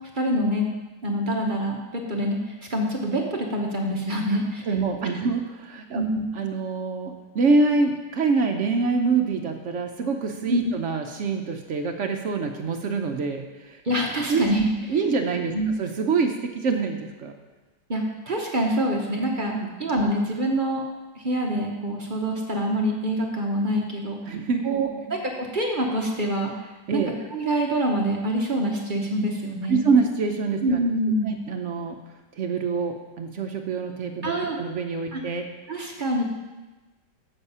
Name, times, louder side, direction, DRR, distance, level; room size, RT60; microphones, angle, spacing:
voice 1, 0.1-0.7 1.0-4.6 5.9-6.3 10.5-10.7 13.8-14.6 14.9-15.0 15.5-15.7 17.9-19.5 19.8-20.8 21.1-24.4 24.6-27.0 27.3-29.9 30.6-31.3 34.2-34.6 35.1-35.2 35.7-36.2, right 1 dB, 40° right, 0 dB, 0.8 m, -26 dB
voice 2, 4.7-6.0 6.4-13.8 14.2-14.5 14.9-15.5 15.8-17.4 19.5-19.7 24.3-24.7 26.9-27.1 29.7-30.6 31.2-32.0 32.4-34.3 34.6-35.5, right 4 dB, 70° right, 4 dB, 0.7 m, -25 dB
7.2 x 6.9 x 5.5 m, 1.2 s
omnidirectional pair, 2.0 m